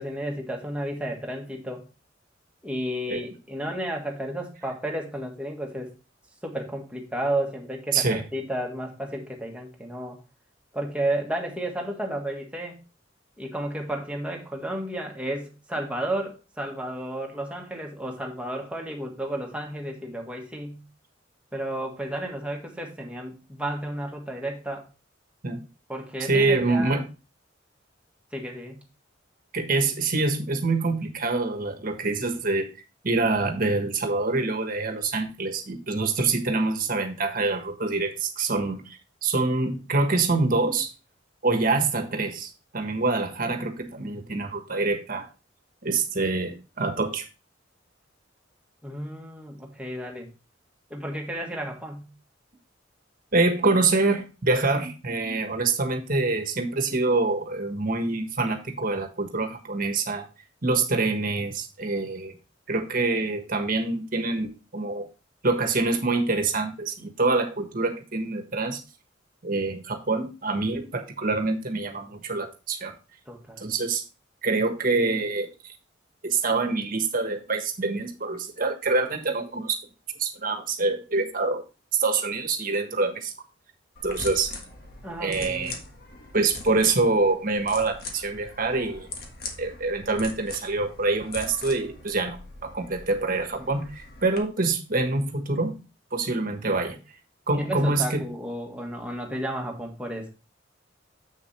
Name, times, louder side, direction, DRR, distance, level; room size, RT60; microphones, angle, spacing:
voice 1, 0.0-1.8 2.6-5.9 6.4-10.2 10.7-12.8 13.4-20.8 21.5-24.8 25.9-27.0 28.3-28.8 48.8-50.3 50.9-52.1 73.3-73.7 85.0-85.8 93.6-93.7 97.6-100.3, right 1 dB, 5° right, 1 dB, 1.6 m, -32 dB
voice 2, 7.9-8.2 25.4-25.6 26.3-27.1 29.5-32.7 33.0-40.9 41.4-45.3 45.8-47.3 53.3-60.3 60.6-62.3 62.7-65.1 65.4-68.8 69.4-72.9 73.6-74.0 74.4-75.5 76.2-79.8 80.2-81.6 82.0-83.3 84.0-84.5 85.2-85.7 86.3-89.1 89.6-95.7 96.1-97.0 97.5-98.2, right 3 dB, 45° right, 6 dB, 1.3 m, -25 dB
sound 1, 84.0-94.4, left 3 dB, 55° left, 1.6 m, -41 dB
7.5 x 6.4 x 3.2 m, 0.30 s
head